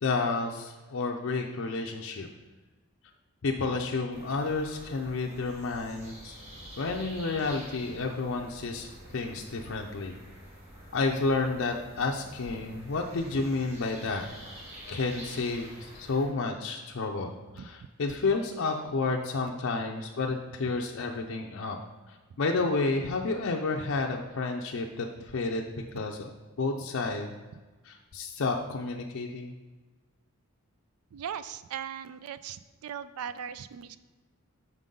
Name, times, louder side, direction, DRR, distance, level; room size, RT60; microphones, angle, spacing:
voice 1, 0.0-2.3 3.4-6.4 6.8-10.1 10.9-14.3 14.9-21.8 22.1-26.3 26.6-27.4 27.8-29.5, left 3 dB, 65° left, 1 dB, 0.5 m, -31 dB
sound 1, 4.1-16.3, equal, 25° right, 2.2 m, -47 dB
voice 2, 31.1-34.0, right 8 dB, 80° right, 14 dB, 0.3 m, -39 dB
6.1 x 5.3 x 3.7 m, 1.3 s
head